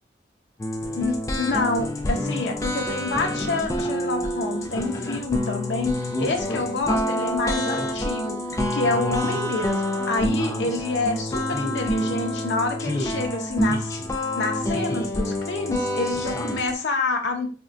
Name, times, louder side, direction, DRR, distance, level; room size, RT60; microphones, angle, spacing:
sound 1, 0.6-16.7, left 1 dB, 20° left, 0.3 m, -27 dB
voice 1, 1.0-8.4 8.7-14.0 14.4-17.5, left 3 dB, 85° left, 3 dB, 0.6 m, -27 dB
3.6 x 2.1 x 2.4 m, 0.38 s
head